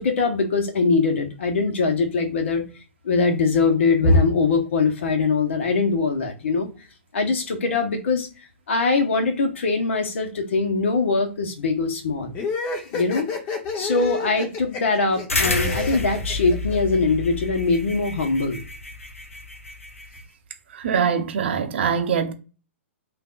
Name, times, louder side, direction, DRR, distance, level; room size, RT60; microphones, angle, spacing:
voice 1, 0.0-2.6 3.0-6.7 7.1-8.3 8.7-12.3 12.9-13.3 13.7-18.6, left 4 dB, 65° left, 1.0 m, -22 dB
sound 1, 12.3-17.0, left 4 dB, 30° left, 0.9 m, -30 dB
sound 2, 15.3-20.2, left 2 dB, 90° left, 0.7 m, -29 dB
voice 2, 20.7-22.3, right 7 dB, 55° right, 0.6 m, -23 dB
3.4 x 2.5 x 2.5 m
figure-of-eight pair, 120°, 7 cm